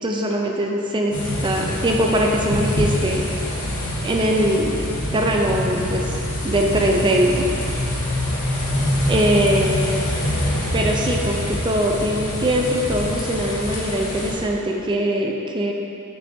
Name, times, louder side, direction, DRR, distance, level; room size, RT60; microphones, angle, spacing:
voice 1, 0.0-3.2 4.0-4.8 5.1-7.4 9.1-9.9 10.7-15.7, equal, 20° right, 0 dB, 0.6 m, -21 dB
sound 1, 1.1-14.3, left 1 dB, 70° left, 1.1 m, -25 dB
6.9 x 6.1 x 2.7 m, 2.7 s
head